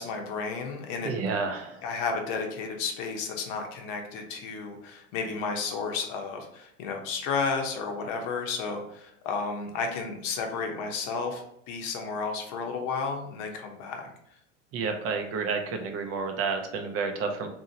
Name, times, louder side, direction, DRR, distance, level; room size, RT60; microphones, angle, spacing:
voice 1, 0.0-1.1 1.8-14.1, left 4 dB, 55° left, 3 dB, 0.8 m, -32 dB
voice 2, 1.0-1.8 14.7-17.5, right 4 dB, 35° right, 4 dB, 0.5 m, -30 dB
2.8 x 2.7 x 2.7 m, 0.76 s
hypercardioid pair, 100°, 39 cm